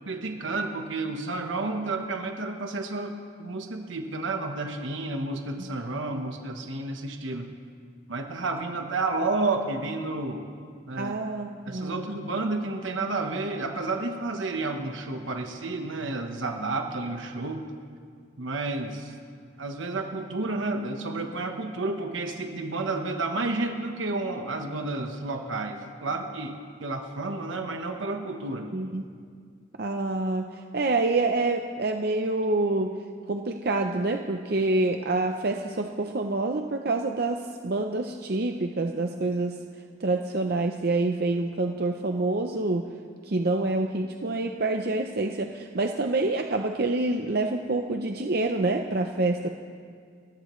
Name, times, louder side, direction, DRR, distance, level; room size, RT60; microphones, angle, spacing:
voice 1, 0.1-7.5 8.1-10.5 10.9-11.2 11.6-17.6 18.4-19.1 19.6-28.7, right 3 dB, 85° right, 4 dB, 1.1 m, -31 dB
voice 2, 11.0-12.0 28.7-29.0 29.8-32.9 33.3-39.6 40.0-42.9 43.2-49.5, right 2 dB, 55° right, 4 dB, 0.6 m, -27 dB
29.5 x 14.5 x 3.2 m, 2.1 s
head